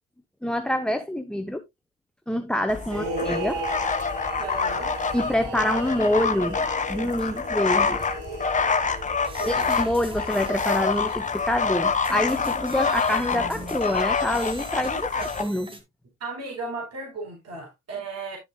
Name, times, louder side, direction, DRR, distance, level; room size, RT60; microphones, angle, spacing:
voice 1, 0.4-1.6 2.3-3.6 5.1-8.0 9.5-15.1 15.4-15.7, left 1 dB, ahead, 0.9 m, -26 dB
sound 1, 2.7-15.4, left 5 dB, 20° left, 1.2 m, -27 dB
sound 2, 2.9-11.4, right 1 dB, 70° right, 4.4 m, -36 dB
voice 2, 4.4-4.9 9.3-9.7 14.9-15.3 16.2-18.4, right 3 dB, 45° right, 4.5 m, -36 dB
sound 3, 9.2-11.2 11.5-15.8, right 2 dB, 15° right, 2.1 m, -41 dB
11.5 x 7.1 x 2.3 m
supercardioid pair, 80°, 36 cm